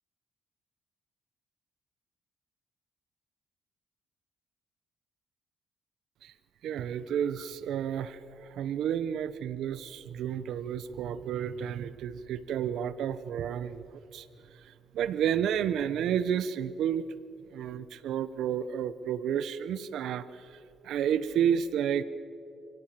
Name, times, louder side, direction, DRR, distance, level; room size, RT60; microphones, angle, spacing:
voice 1, 6.6-14.3 14.5-17.0 17.5-20.6 20.8-22.0, right 9 dB, 80° right, 15 dB, 0.8 m, -31 dB
29.0 x 17.0 x 7.4 m, 2.5 s
cardioid pair, 90°, 0 cm